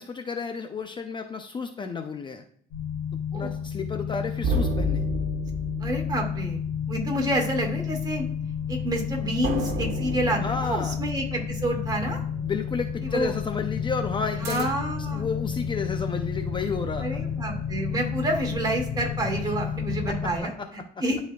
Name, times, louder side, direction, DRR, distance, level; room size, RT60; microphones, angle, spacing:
voice 1, 0.0-2.4 3.1-5.0 10.4-11.0 12.4-14.7 15.1-17.3 19.4-20.9, left 5 dB, 30° left, 6 dB, 0.5 m, -32 dB
sound 1, 2.7-20.4, left 7 dB, 75° left, 1.7 m, -31 dB
sound 2, 4.4-7.2 9.4-12.1 14.4-15.1, right 1 dB, 75° right, 1.3 m, -32 dB
voice 2, 5.8-6.6 6.9-8.2 8.7-12.2 13.0-13.3 14.4-15.3 17.0-20.5 21.0-21.2, right 1 dB, 25° right, 1 dB, 2.1 m, -28 dB
11.5 x 4.2 x 2.3 m, 0.62 s
cardioid pair, 110°, 17 cm